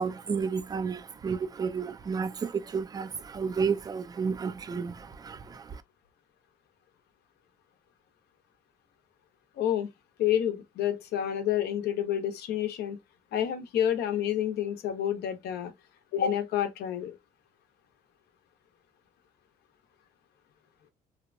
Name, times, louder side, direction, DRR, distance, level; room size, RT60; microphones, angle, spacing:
voice 1, 0.0-5.8, right 5 dB, 25° right, 0.4 m, -32 dB
voice 2, 9.6-9.9 10.2-13.0 13.3-15.7 16.1-17.2, left 10 dB, 75° left, 0.7 m, -29 dB
2.8 x 2.1 x 2.5 m
cardioid pair, 110°, 17 cm